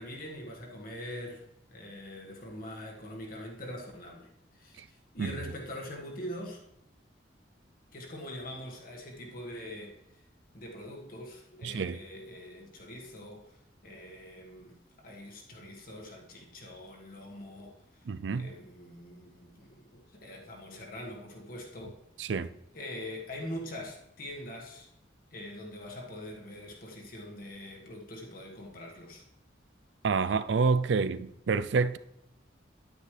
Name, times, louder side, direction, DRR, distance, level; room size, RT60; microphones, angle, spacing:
voice 1, 0.0-1.4 1.7-6.6 7.9-9.9 10.5-13.5 13.8-14.7 15.0-17.8 18.3-22.0 22.7-24.9 25.3-29.2, left 1 dB, 50° left, 1.6 m, -43 dB
voice 2, 11.6-12.0 18.1-18.5 22.2-22.5 30.0-32.0, right 5 dB, 70° right, 0.4 m, -28 dB
9.8 x 9.5 x 3.3 m
head